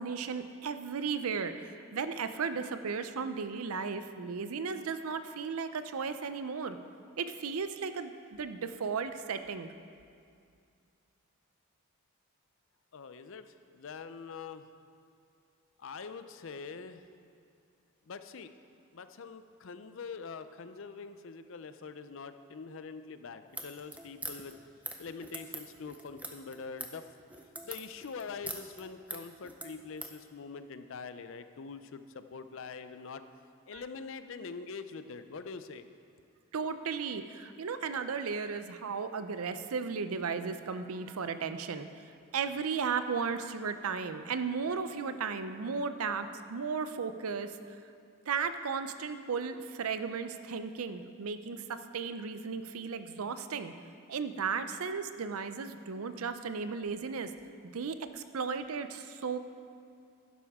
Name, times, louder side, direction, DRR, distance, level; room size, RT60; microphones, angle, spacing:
voice 1, 0.0-1.6 1.9-6.8 7.2-9.7 33.7-33.8 36.5-41.9 42.3-47.5 48.3-53.7 54.1-57.3 57.7-59.4, right 5 dB, 85° right, 10 dB, 0.5 m, -35 dB
voice 2, 12.9-14.7 15.8-17.1 18.0-18.5 18.9-24.5 25.0-27.1 27.6-33.2 33.7-35.9, left 5 dB, 60° left, 10 dB, 0.5 m, -44 dB
sound 1, 23.5-30.2, right 2 dB, 5° right, 0.6 m, -43 dB
12.0 x 10.0 x 3.6 m, 2.4 s
head